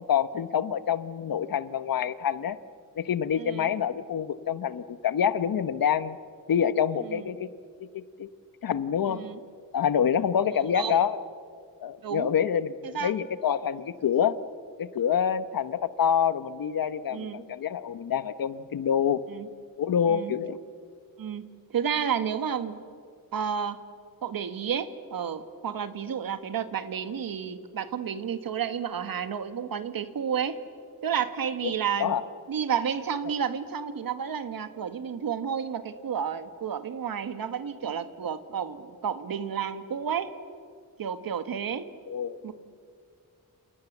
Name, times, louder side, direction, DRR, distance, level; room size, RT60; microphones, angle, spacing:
voice 1, 0.0-2.6 3.0-6.2 6.5-7.5 7.8-8.3 8.6-9.2 9.7-11.2 11.8-14.4 14.8-19.2 19.8-20.6 32.0-32.2 42.1-42.4, left 8 dB, 70° left, 14 dB, 1.1 m, -26 dB
voice 2, 3.4-3.7 7.0-7.3 9.1-9.4 10.5-11.0 12.0-12.3 12.8-13.1 17.1-17.4 19.3-19.5 20.1-20.3 21.2-21.5 21.7-22.8 23.3-23.8 24.2-30.6 31.0-32.1 32.5-40.3 41.0-41.9 42.4-42.5, right 7 dB, 70° right, 11 dB, 1.6 m, -31 dB
28.5 x 28.0 x 7.4 m, 2.2 s
wide cardioid pair, 105°, 36 cm